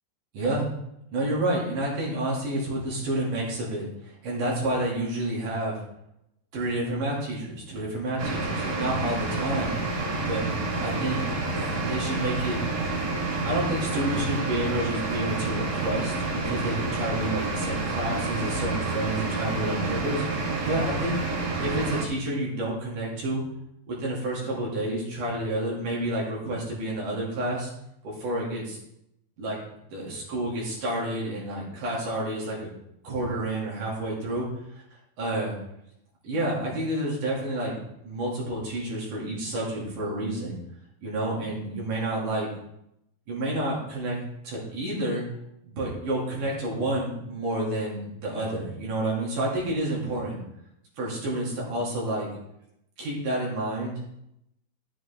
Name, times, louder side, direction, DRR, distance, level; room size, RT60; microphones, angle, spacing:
voice 1, 0.3-0.7 1.1-5.8 6.5-10.4 10.8-11.2 11.5-12.6 13.4-23.4 23.9-27.7 28.0-28.8 29.4-32.7 33.0-34.8 35.2-35.5 36.2-37.8 38.0-40.6 41.0-42.5 43.3-44.2 44.4-45.2 45.6-50.4 51.0-52.3 53.0-54.0, right 1 dB, 55° right, -4 dB, 3.8 m, -29 dB
sound 1, 8.2-22.0, right 3 dB, 90° right, 0.8 m, -29 dB
12.5 x 7.7 x 3.6 m, 0.80 s
omnidirectional pair, 4.5 m